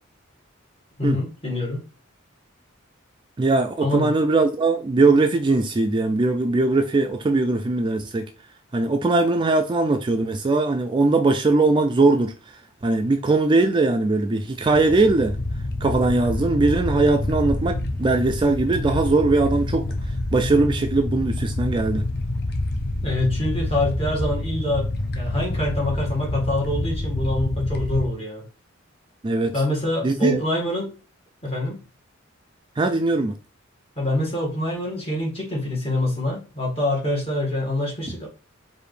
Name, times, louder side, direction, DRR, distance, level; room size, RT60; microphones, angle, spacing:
voice 1, 1.0-1.8 3.8-4.1 23.0-28.4 29.5-30.9 31.4-31.8 34.0-38.3, left 1 dB, 30° left, 1.8 m, -25 dB
voice 2, 3.4-8.3 8.7-12.3 12.8-15.4 15.8-19.9 20.3-22.0 29.2-29.5 30.0-30.4 32.8-33.3, right 3 dB, 25° right, 0.3 m, -20 dB
sound 1, 14.6-28.1, left 1 dB, 55° left, 0.6 m, -27 dB
4.8 x 2.6 x 3.2 m
head